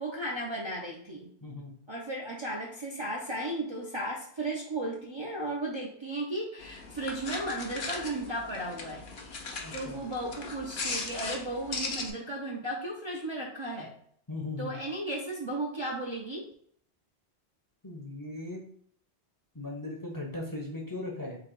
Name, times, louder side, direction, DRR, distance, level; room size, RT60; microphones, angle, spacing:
voice 1, 0.0-1.3 1.9-9.1 9.5-14.0 14.6-16.5, right 1 dB, 30° right, -3 dB, 0.6 m, -35 dB
voice 2, 1.4-1.7 9.6-10.0 14.3-14.7 17.8-18.6 19.5-21.4, left 2 dB, 20° left, -1 dB, 0.7 m, -38 dB
sound 1, 6.6-12.1, left 3 dB, 55° left, 0.9 m, -38 dB
3.9 x 2.9 x 4.5 m, 0.64 s
omnidirectional pair, 1.1 m